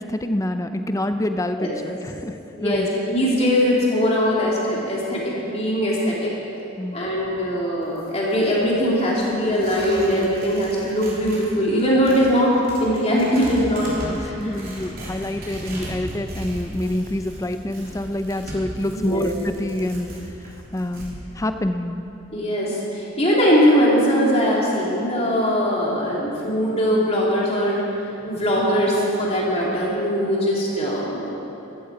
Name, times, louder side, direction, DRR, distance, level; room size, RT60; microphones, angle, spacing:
voice 1, 0.0-2.9 6.8-7.0 14.0-20.1 20.7-22.0, left 1 dB, 15° left, 8 dB, 0.5 m, -27 dB
voice 2, 2.5-6.3 6.9-12.5 12.8-13.9 14.1-14.3 18.9-19.3 22.3-27.8 28.3-31.3, equal, 30° left, -5 dB, 2.8 m, -21 dB
Tearing, 7.8-11.5 11.8-21.1, right 1 dB, 45° right, 3.3 m, -36 dB
14.5 x 13.5 x 4.8 m, 2.9 s
head